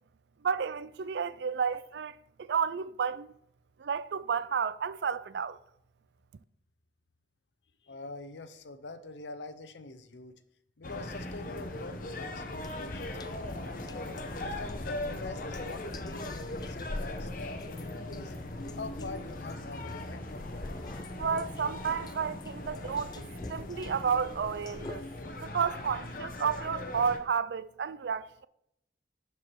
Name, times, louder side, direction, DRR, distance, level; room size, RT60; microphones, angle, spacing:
voice 1, 0.4-3.3 3.8-5.6 21.2-23.2 23.5-25.0 25.4-28.5, right 6 dB, 75° right, 0.4 m, -31 dB
voice 2, 7.8-10.4 10.8-13.9 14.3-18.3 18.7-20.3, left 3 dB, 80° left, 0.7 m, -45 dB
sound 1, 10.8-27.2, left 1 dB, 50° left, 0.9 m, -39 dB
sound 2, 12.6-25.0, left 2 dB, 25° left, 0.3 m, -45 dB
11.0 x 4.7 x 4.5 m
head